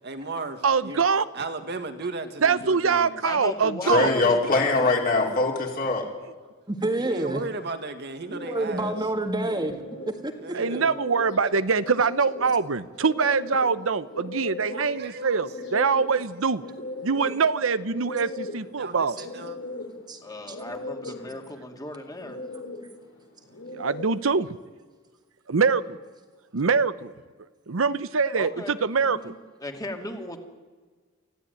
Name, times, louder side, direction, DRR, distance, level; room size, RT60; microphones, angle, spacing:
voice 1, 0.0-1.1 1.3-3.2 7.0-8.9 10.4-10.9 14.7-15.4 15.7-15.9 16.7-16.8 17.1-17.2 18.8-19.6, right 3 dB, 55° right, 1.8 m, -36 dB
voice 2, 0.6-1.3 2.4-4.1 10.5-16.6 17.0-19.2 23.7-24.5 25.5-26.0 26.5-27.1 27.7-29.3, right 5 dB, 85° right, 0.8 m, -24 dB
voice 3, 3.2-4.9 20.2-22.4 28.3-28.8 29.0-30.4, left 1 dB, 20° left, 2.5 m, -36 dB
voice 4, 3.8-6.1, left 3 dB, 45° left, 4.1 m, -22 dB
voice 5, 6.7-7.4 8.3-9.8 10.2-10.3 20.1-20.2 20.5-20.6, right 2 dB, 20° right, 1.7 m, -27 dB
sound 1, 8.2-24.3, left 2 dB, 65° left, 4.2 m, -39 dB
24.5 x 15.5 x 9.3 m
head